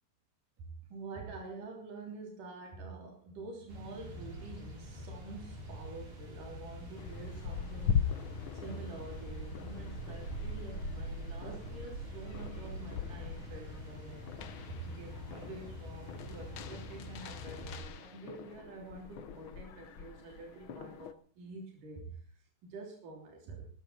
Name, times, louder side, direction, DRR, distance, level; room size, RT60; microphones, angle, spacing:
voice 1, 0.9-8.2 8.5-14.3 14.6-22.3 22.6-23.7, right 3 dB, 75° right, 1 dB, 4.8 m, -47 dB
sound 1, 3.7-17.7, equal, 60° right, 8.5 m, -44 dB
sound 2, 7.0-21.1, left 8 dB, 60° left, 1.3 m, -41 dB
20.0 x 13.5 x 4.3 m, 0.41 s
omnidirectional pair, 3.7 m